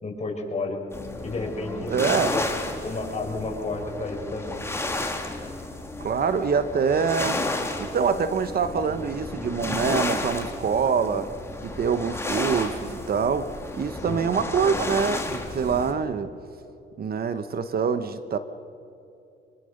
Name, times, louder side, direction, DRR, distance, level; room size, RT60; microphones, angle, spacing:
voice 1, 0.0-0.8 1.2-2.5 2.8-4.6 14.0-14.2, left 3 dB, 35° left, 0 dB, 5.8 m, -31 dB
sound 1, 0.9-15.9, left 2 dB, 15° left, 2.6 m, -32 dB
voice 2, 1.9-2.4 6.0-7.4 7.8-11.3 11.6-16.3 17.0-18.4, right 6 dB, 50° right, 11 dB, 1.1 m, -25 dB
25.0 x 23.0 x 6.7 m, 2.7 s
cardioid pair, 90°, 20 cm